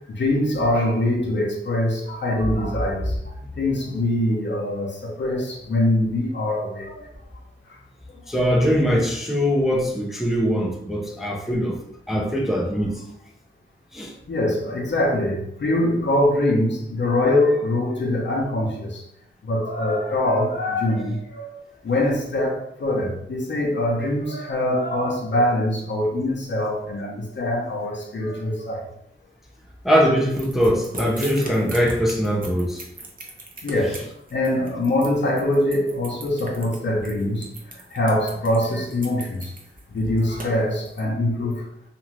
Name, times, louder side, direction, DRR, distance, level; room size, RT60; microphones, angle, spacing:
voice 1, 0.1-3.1 3.6-7.1 11.5-11.6 12.1-12.2 14.3-19.0 19.4-28.8 33.6-34.1 34.3-37.5 37.9-39.5 39.9-41.6, left 1 dB, 60° left, 0.8 m, -23 dB
voice 2, 8.3-11.8 12.1-13.0 13.9-14.1 29.8-32.8, equal, ahead, 0.5 m, -21 dB
sound 1, 30.4-41.0, right 2 dB, 40° right, 0.7 m, -38 dB
2.5 x 2.4 x 3.1 m
cardioid pair, 65°, 21 cm